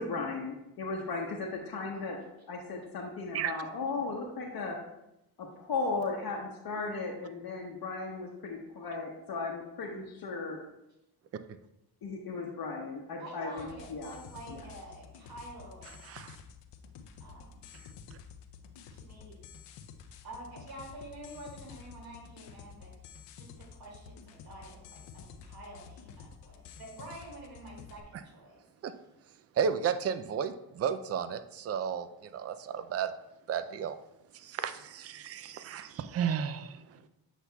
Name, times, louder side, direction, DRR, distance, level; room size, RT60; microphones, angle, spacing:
voice 1, 0.0-2.2 2.5-4.8 5.4-10.6 12.0-14.2 14.5-14.6, left 3 dB, 60° left, -2 dB, 0.9 m, -36 dB
voice 2, 1.9-2.3 13.2-16.0 17.2-17.6 18.9-19.4 20.2-28.6, right 1 dB, 60° right, -2 dB, 2.5 m, -48 dB
sound 1, 13.6-28.0, left 6 dB, 85° left, 0.7 m, -50 dB
voice 3, 16.0-16.4 28.8-28.9 29.6-33.1 33.5-34.0 34.3-36.8, right 7 dB, 40° right, 11 dB, 0.4 m, -33 dB
8.1 x 5.7 x 2.3 m, 0.88 s
cardioid pair, 85°, 41 cm